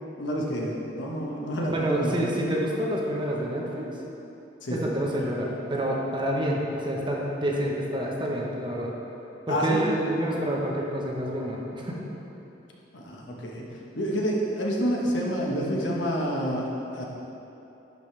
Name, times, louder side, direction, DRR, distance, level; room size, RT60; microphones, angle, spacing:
voice 1, 0.2-2.2 4.6-4.8 9.5-9.8 12.9-13.6 14.0-17.0, equal, 85° left, -2 dB, 1.2 m, -28 dB
voice 2, 1.7-3.9 4.7-8.9 9.5-12.0, right 1 dB, 25° right, -2 dB, 0.9 m, -28 dB
11.0 x 5.2 x 3.3 m, 3.0 s
head